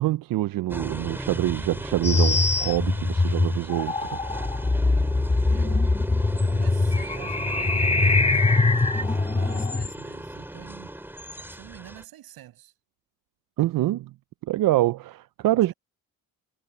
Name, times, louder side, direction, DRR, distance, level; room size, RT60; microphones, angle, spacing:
voice 1, 0.0-4.2 13.6-14.1 14.5-15.7, right 15 dB, 70° right, 0.5 m, -25 dB
sound 1, 0.7-12.0, right 1 dB, 5° right, 2.4 m, -36 dB
sound 2, 2.0-9.9, left 3 dB, 15° left, 1.5 m, -22 dB
voice 2, 5.5-6.0 6.5-8.1 8.9-11.0 11.5-12.7 15.4-15.7, right 14 dB, 90° right, 6.8 m, -46 dB
cardioid pair, 85°, 35 cm